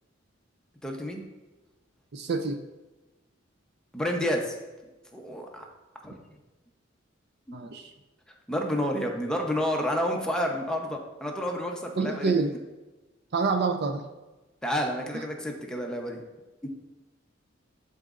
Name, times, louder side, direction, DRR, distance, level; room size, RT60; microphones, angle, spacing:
voice 1, 0.8-1.2 3.9-4.5 5.1-5.6 6.0-6.2 7.5-7.6 8.5-12.3 14.6-16.2 16.6-16.7, equal, 5° left, 0 dB, 0.7 m, -30 dB
voice 2, 2.1-2.6 7.5-7.9 12.0-12.5 13.3-14.0 15.1-15.2, right 4 dB, 55° right, 7 dB, 0.5 m, -27 dB
11.5 x 4.0 x 2.5 m, 1.1 s
head